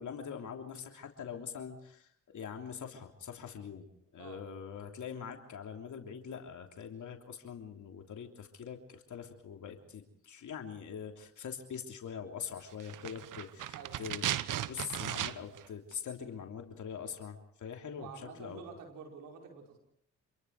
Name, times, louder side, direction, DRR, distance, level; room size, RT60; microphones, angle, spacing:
voice 1, 0.0-14.2 14.7-18.6, left 7 dB, 65° left, 3 dB, 3.3 m, -43 dB
sound 1, 12.8-15.7 15.9-16.0, right 12 dB, 75° right, 1.0 m, -36 dB
voice 2, 18.0-19.8, right 6 dB, 90° right, 2 dB, 5.1 m, -48 dB
27.5 x 21.5 x 4.8 m, 0.73 s
supercardioid pair, 55°, 32 cm